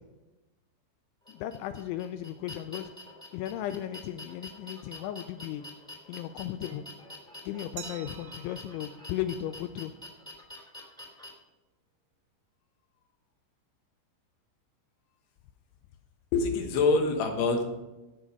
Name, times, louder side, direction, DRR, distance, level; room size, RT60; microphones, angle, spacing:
sound 1, 1.2-11.3, left 1 dB, ahead, 1.5 m, -46 dB
voice 1, 1.3-2.9 3.3-5.6 6.1-6.9 7.5-9.9, left 11 dB, 85° left, 9 dB, 2.7 m, -36 dB
Glass, 7.8-10.5, right 10 dB, 75° right, 3.2 m, -49 dB
voice 2, 16.3-17.6, left 4 dB, 70° left, 4 dB, 2.8 m, -25 dB
16.5 x 6.4 x 5.2 m, 1.1 s
omnidirectional pair, 5.8 m